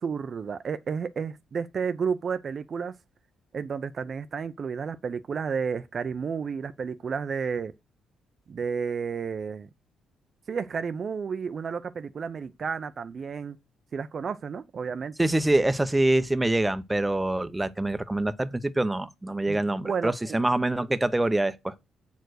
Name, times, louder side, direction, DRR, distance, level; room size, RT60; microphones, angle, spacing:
voice 1, 0.0-2.9 3.5-7.7 8.5-9.7 10.5-13.6 13.9-15.1 19.5-20.1, right 6 dB, 45° right, 0.6 m, -31 dB
voice 2, 15.2-21.7, right 1 dB, 10° right, 0.8 m, -25 dB
8.1 x 4.5 x 6.3 m
cardioid pair, 90°, 0 cm